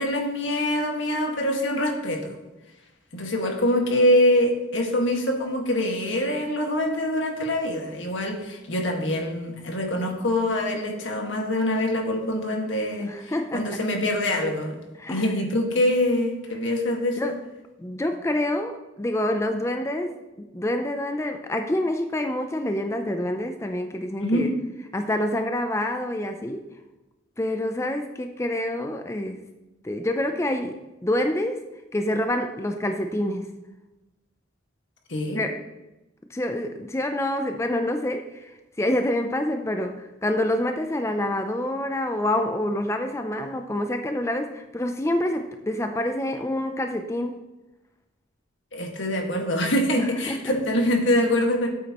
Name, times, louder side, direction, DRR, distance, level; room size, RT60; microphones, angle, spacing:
voice 1, 0.0-2.3 3.1-14.8 15.1-17.3 24.2-24.5 35.1-35.4 48.7-51.7, left 1 dB, 75° left, 1 dB, 1.8 m, -24 dB
voice 2, 13.0-13.8 15.0-15.3 17.2-17.4 17.8-24.5 24.9-26.7 27.4-29.4 29.8-30.8 31.0-31.6 31.9-33.5 35.3-35.6 36.3-47.4 50.0-50.6, left 1 dB, 15° left, 6 dB, 0.4 m, -27 dB
13.0 x 8.3 x 3.0 m, 1.0 s
head